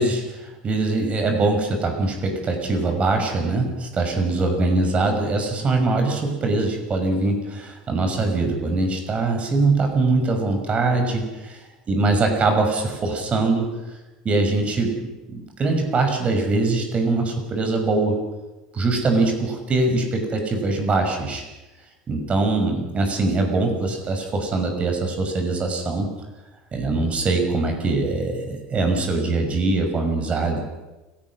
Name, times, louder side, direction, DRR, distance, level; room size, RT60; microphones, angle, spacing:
voice 1, 0.0-11.6 11.9-13.7 14.2-18.2 18.7-21.4 22.1-26.1 26.7-30.6, right 3 dB, 30° right, 4 dB, 6.1 m, -22 dB
29.5 x 16.0 x 6.4 m, 1.1 s
hypercardioid pair, 80°, 4 cm